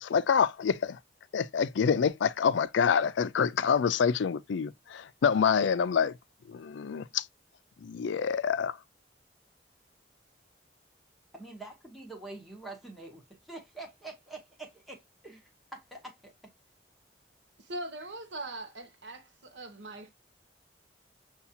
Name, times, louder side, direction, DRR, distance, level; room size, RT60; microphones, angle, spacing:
voice 1, 0.0-1.0 1.3-6.1 6.5-7.2 7.8-8.8, left 6 dB, 80° left, 0.4 m, -27 dB
voice 2, 11.3-16.3, right 2 dB, ahead, 0.8 m, -46 dB
voice 3, 17.6-20.1, right 1 dB, 75° right, 0.7 m, -41 dB
6.9 x 2.4 x 2.7 m
head